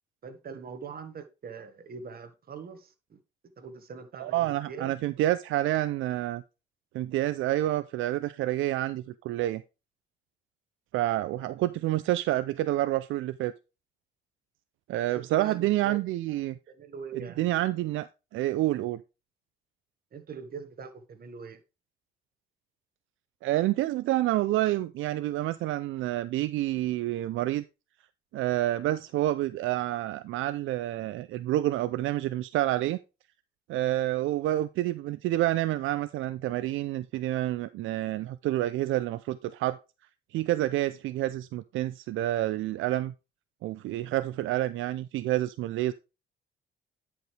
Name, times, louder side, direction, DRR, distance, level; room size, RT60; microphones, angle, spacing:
voice 1, 0.2-3.2 3.6-5.0 15.1-16.0 16.3-16.4 16.7-17.5 20.1-21.6, right 6 dB, 50° right, 1.4 m, -42 dB
voice 2, 4.2-6.4 6.9-9.6 10.9-13.5 14.9-16.6 17.4-18.1 18.3-19.0 23.4-27.6 28.3-33.0 33.7-39.8 40.3-43.1 43.6-45.9, right 15 dB, 80° right, 0.4 m, -28 dB
10.5 x 5.1 x 3.2 m
cardioid pair, 90°, 20 cm